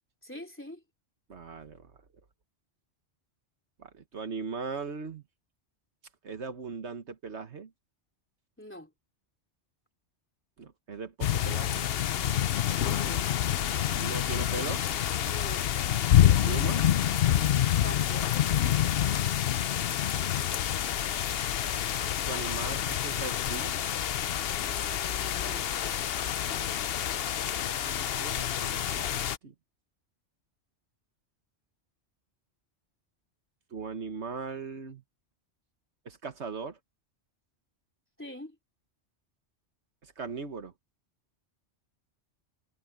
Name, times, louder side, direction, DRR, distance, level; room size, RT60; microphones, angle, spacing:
voice 1, 0.2-0.8 8.6-8.9 12.8-13.3 15.3-15.7 17.8-18.5 24.4-25.7 38.2-38.6, left 1 dB, 10° left, 3.3 m, -44 dB
voice 2, 1.3-1.9 3.8-5.2 6.2-7.7 10.6-11.9 13.9-14.8 16.2-16.8 18.8-19.2 21.3-21.4 22.3-23.7 27.6-29.5 33.7-35.0 36.0-36.8 40.0-40.7, right 5 dB, 75° right, 1.6 m, -39 dB
sound 1, 11.2-29.4, left 11 dB, 60° left, 0.8 m, -27 dB
omnidirectional pair, 1.2 m